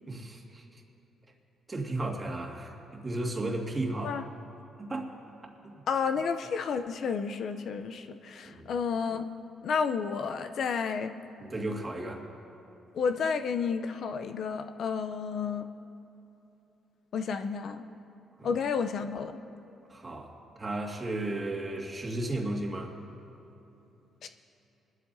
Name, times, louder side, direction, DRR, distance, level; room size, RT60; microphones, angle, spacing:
voice 1, 0.1-0.6 1.7-4.2 4.8-5.1 5.6-5.7 8.5-8.6 11.4-12.2 18.4-18.5 19.9-20.3 20.6-22.9, right 2 dB, 25° right, 1 dB, 1.9 m, -34 dB
voice 2, 5.9-9.2 9.6-11.1 12.9-15.6 17.1-17.8 18.4-19.4 24.2-24.3, left 6 dB, 65° left, 8 dB, 0.6 m, -31 dB
22.5 x 12.5 x 2.7 m, 3.0 s
cardioid pair, 90°, 0 cm